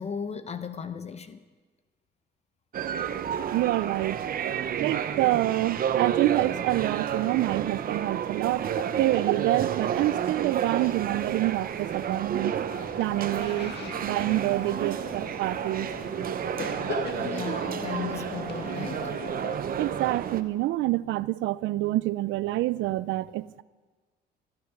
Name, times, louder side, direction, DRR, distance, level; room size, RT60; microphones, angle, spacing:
voice 1, 0.0-1.4 8.8-8.9 17.1-19.1, left 7 dB, 35° left, 0.7 m, -36 dB
sound 1, 2.7-20.4, right 8 dB, 50° right, 0.8 m, -31 dB
voice 2, 3.5-4.2 4.8-8.7 9.0-12.5 13.0-13.7 14.0-15.9 19.8-23.6, right 17 dB, 85° right, 0.4 m, -27 dB
sound 2, 9.4-16.1, left 1 dB, 5° left, 5.2 m, -54 dB
sound 3, 12.7-19.6, left 5 dB, 65° left, 1.6 m, -40 dB
14.5 x 12.0 x 5.9 m
cardioid pair, 115°, 19 cm